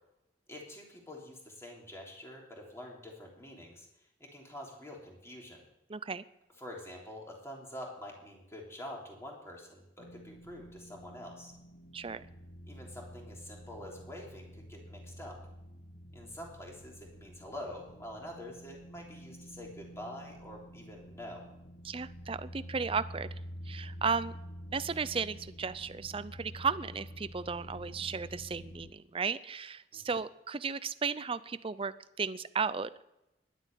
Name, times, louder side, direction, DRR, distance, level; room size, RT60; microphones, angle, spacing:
voice 1, 0.5-5.6 6.6-11.5 12.7-15.4 16.1-21.4 29.9-30.2, left 1 dB, 15° left, -1 dB, 3.4 m, -46 dB
voice 2, 5.9-6.2 11.9-12.2 21.8-23.3 23.7-24.3 24.7-33.0, right 5 dB, 30° right, 15 dB, 0.5 m, -35 dB
sound 1, 10.0-28.9, equal, 60° left, 1.3 m, -48 dB
11.0 x 9.2 x 9.2 m, 0.89 s
head